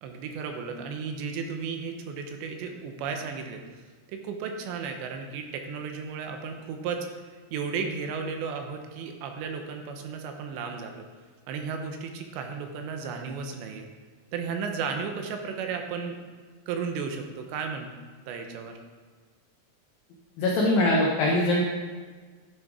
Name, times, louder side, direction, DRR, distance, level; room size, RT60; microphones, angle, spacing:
voice 1, 0.0-3.6 4.1-7.1 7.5-11.1 11.5-13.9 14.3-16.2 16.7-17.9 18.3-18.8, right 5 dB, 75° right, 4 dB, 2.7 m, -34 dB
voice 2, 20.4-21.6, left 1 dB, 90° left, -2 dB, 2.0 m, -22 dB
11.0 x 6.2 x 4.8 m, 1.5 s
omnidirectional pair, 5.6 m